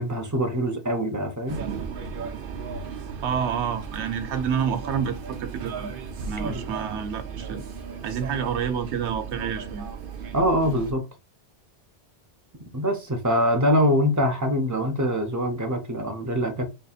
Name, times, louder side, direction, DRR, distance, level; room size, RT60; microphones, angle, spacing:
voice 1, 0.0-1.6 6.4-6.6 10.3-11.0 12.7-16.6, equal, 20° right, 0.5 m, -24 dB
sound 1, 1.5-10.9, right 5 dB, 60° right, 0.7 m, -35 dB
voice 2, 3.2-5.9 6.3-7.6 8.0-9.9, right 7 dB, 85° right, 0.9 m, -28 dB
5.4 x 2.6 x 2.3 m
omnidirectional pair, 1.1 m